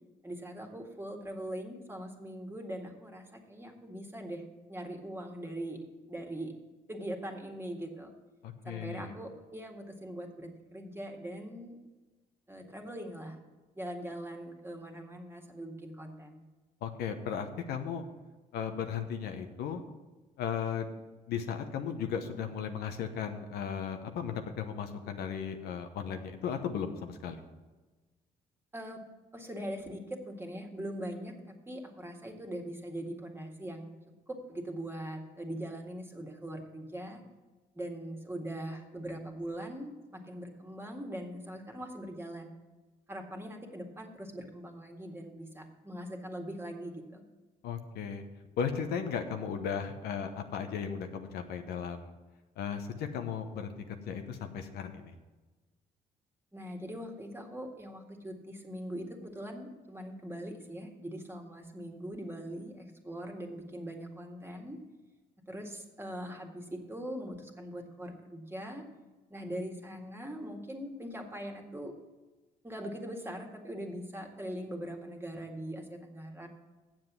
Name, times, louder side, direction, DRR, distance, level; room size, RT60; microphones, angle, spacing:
voice 1, 0.2-4.4 4.7-5.8 6.1-6.5 6.9-8.1 8.6-11.8 12.5-13.4 13.8-16.4 28.7-29.0 29.3-34.0 34.3-37.2 37.8-42.5 43.1-47.2 56.5-64.8 65.5-68.9 69.3-72.0 72.6-76.5, right 1 dB, 15° right, 3 dB, 1.9 m, -41 dB
voice 2, 8.4-9.1 16.8-18.1 18.5-19.8 20.4-20.8 21.3-27.4 47.6-48.2 48.6-52.1 52.6-55.1, left 7 dB, 80° left, 6 dB, 1.0 m, -36 dB
7.8 x 7.4 x 7.4 m, 1.2 s
supercardioid pair, 75°, 16 cm